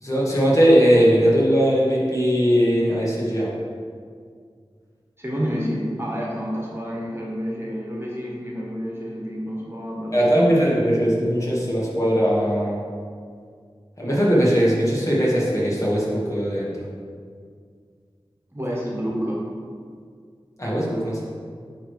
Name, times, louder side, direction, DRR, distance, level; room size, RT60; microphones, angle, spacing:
voice 1, 0.0-3.5 10.1-12.8 14.0-16.8 20.6-21.2, equal, 35° left, -6 dB, 1.8 m, -19 dB
voice 2, 5.2-10.6 18.5-19.4, equal, 25° right, -4 dB, 1.6 m, -29 dB
8.9 x 3.3 x 4.8 m, 2.1 s
wide cardioid pair, 45°, 10 cm